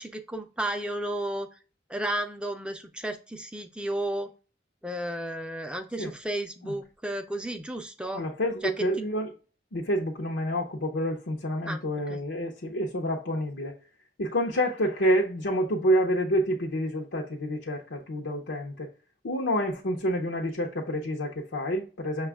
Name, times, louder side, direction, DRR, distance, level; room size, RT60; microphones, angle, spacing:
voice 1, 0.0-1.5 1.9-4.3 4.8-8.2 8.6-8.9 11.7-11.8 12.1-12.2, right 1 dB, 5° right, 0.4 m, -33 dB
voice 2, 8.1-9.3 9.7-13.8 14.2-18.9 19.2-22.3, equal, 90° left, 0.7 m, -28 dB
6.0 x 2.3 x 3.4 m
head